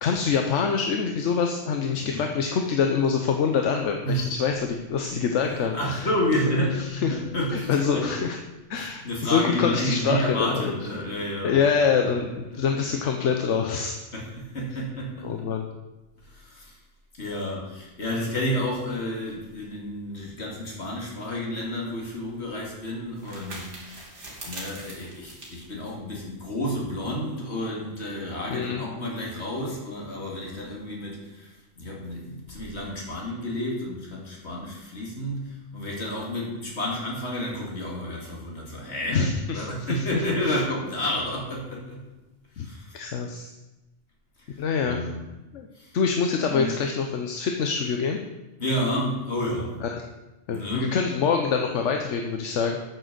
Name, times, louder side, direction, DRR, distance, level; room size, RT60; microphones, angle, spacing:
voice 1, 0.0-6.1 6.8-7.2 7.5-8.4 8.7-10.7 11.4-14.0 15.2-15.7 28.5-28.8 39.1-40.0 40.5-40.6 42.6-42.7 42.9-43.5 44.6-45.0 45.5-45.7 45.9-48.2 49.8-50.1 50.5-52.8, left 6 dB, 85° left, 4 dB, 1.1 m, -25 dB
voice 2, 5.1-8.1 8.7-11.6 12.1-12.2 12.7-12.8 14.1-15.5 16.2-16.8 17.2-42.1 42.5-43.0 44.4-45.3 45.7-46.0 46.5-46.7 48.6-49.8 50.5-50.9, equal, 65° left, -2 dB, 2.6 m, -30 dB
sound 1, 21.7-26.8, right 2 dB, 80° right, 2.6 m, -44 dB
8.7 x 6.3 x 6.8 m, 1.1 s
omnidirectional pair, 1.2 m